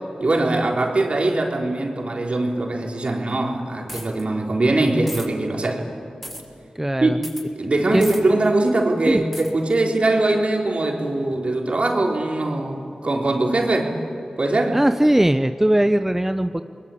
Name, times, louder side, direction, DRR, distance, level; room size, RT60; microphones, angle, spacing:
voice 1, 0.2-5.9 7.0-7.2 7.6-14.0 14.4-14.8, right 2 dB, 60° right, 1 dB, 3.9 m, -21 dB
sound 1, 3.9-4.2 5.1-5.3 6.2-6.4 7.2-7.4 8.0-8.2 9.3-9.5, equal, 5° left, 6.7 m, -34 dB
voice 2, 6.8-7.2 7.9-8.0 9.0-9.2 14.7-16.6, right 1 dB, 15° right, 9 dB, 0.7 m, -19 dB
29.0 x 21.5 x 8.7 m, 2.6 s
cardioid pair, 40°, 2 cm